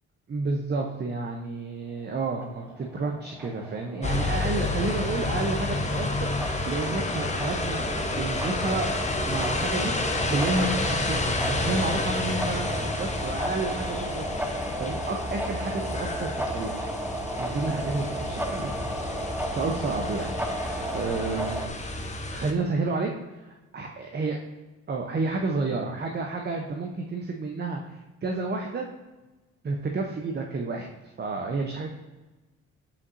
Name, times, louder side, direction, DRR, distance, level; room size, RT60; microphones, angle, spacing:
voice 1, 0.3-16.7 17.4-18.7 19.5-21.7 22.3-24.4 24.9-28.9 29.6-30.9 31.2-31.9, right 3 dB, 35° right, 2 dB, 0.8 m, -31 dB
sound 1, 2.4-21.7, right 1 dB, 5° right, 0.9 m, -34 dB
sound 2, 4.0-22.5, left 2 dB, 25° left, 0.8 m, -30 dB
8.3 x 5.5 x 2.7 m, 1.1 s
cardioid pair, 90°, 30 cm